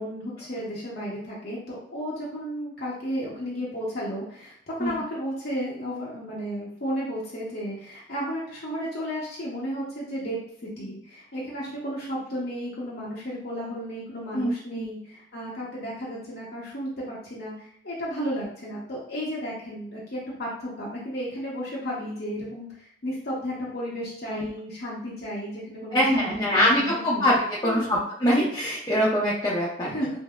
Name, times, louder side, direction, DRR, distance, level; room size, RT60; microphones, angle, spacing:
voice 1, 0.0-27.3 27.6-28.0 29.8-30.1, equal, 55° left, -6 dB, 0.8 m, -33 dB
voice 2, 14.3-14.8 24.3-24.5 25.9-29.9, equal, 20° left, -7 dB, 0.6 m, -23 dB
5.2 x 2.0 x 2.3 m, 0.64 s
head